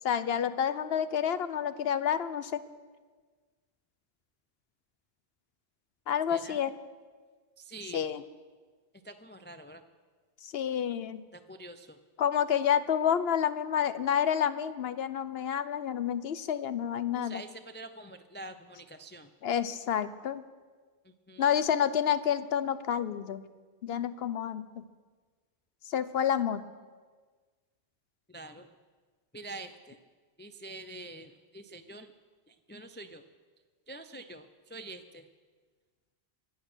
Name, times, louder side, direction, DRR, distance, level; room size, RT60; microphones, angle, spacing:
voice 1, 0.0-2.6 6.1-6.7 7.9-8.2 10.4-11.2 12.2-17.4 19.4-20.4 21.4-23.4 23.8-24.9 25.9-26.6, left 9 dB, 65° left, 14 dB, 0.9 m, -29 dB
voice 2, 6.3-6.6 7.6-8.1 9.0-9.8 11.3-12.0 17.1-19.3 21.0-21.5 28.3-28.7 29.3-30.0 30.4-32.1 32.5-33.2 33.9-35.3, right 2 dB, 15° left, 8 dB, 0.4 m, -46 dB
23.0 x 8.8 x 6.2 m, 1.4 s
omnidirectional pair, 1.1 m